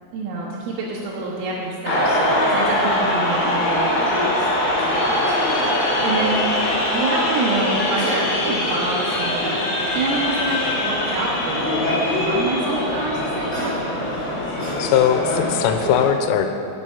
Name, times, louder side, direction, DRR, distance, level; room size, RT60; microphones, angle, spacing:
voice 1, 0.1-4.5 4.8-6.4 6.9-9.6 10.0-13.8, right 3 dB, 90° right, -6 dB, 3.9 m, -27 dB
sound 1, 1.6-2.1 3.9-4.3 4.6-4.7 4.9-5.4 6.2-6.3 6.5-6.6 8.1-8.2 9.2-11.5 11.8-11.9 12.4-12.5 13.0-13.1, left 4 dB, 70° left, 2.1 m, -32 dB
sound 2, 1.9-16.1, left 1 dB, 40° left, 2.2 m, -22 dB
sound 3, 7.9-8.2 8.6-9.4 10.4-11.1 13.2-15.2 15.7-15.9, equal, 15° left, 1.8 m, -35 dB
voice 2, 14.8-16.6, left 9 dB, 90° left, 7 dB, 3.2 m, -19 dB
14.0 x 7.8 x 5.7 m, 2.6 s
omnidirectional pair, 5.7 m